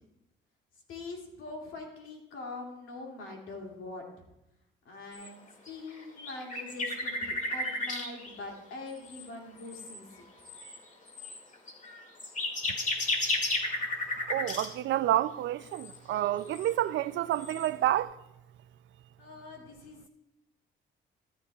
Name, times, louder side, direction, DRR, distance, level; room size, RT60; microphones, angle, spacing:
voice 1, 0.9-4.0 4.8-10.2 19.2-20.1, left 3 dB, 85° left, 2.5 m, -43 dB
sound 1, 5.1-5.3 5.7-8.3 9.0-9.3 9.6-10.0 10.4-10.8 11.1-14.7 15.7-16.0 16.4-16.7 17.0-17.1 17.3-17.9, left 2 dB, 40° left, 2.2 m, -34 dB
voice 2, 14.3-18.1, right 13 dB, 70° right, 0.4 m, -29 dB
14.0 x 13.0 x 2.3 m
cardioid pair, 90°, 20 cm